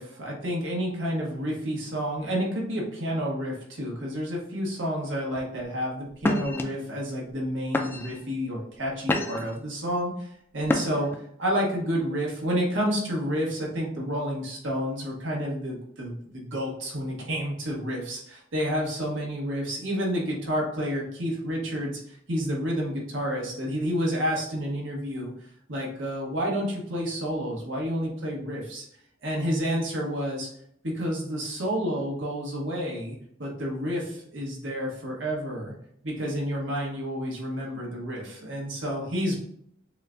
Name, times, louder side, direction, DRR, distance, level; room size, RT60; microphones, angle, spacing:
voice 1, 0.0-11.1 11.4-25.3 25.7-28.8 29.2-30.5 30.8-35.7 36.0-39.3, equal, 85° right, -2 dB, 1.3 m, -30 dB
sound 1, 5.3-5.6 6.2-6.6 7.3-7.4 7.7-8.2 8.7-9.6 10.6-11.2, left 1 dB, 10° left, 0.3 m, -28 dB
6.4 x 2.2 x 2.5 m, 0.69 s
head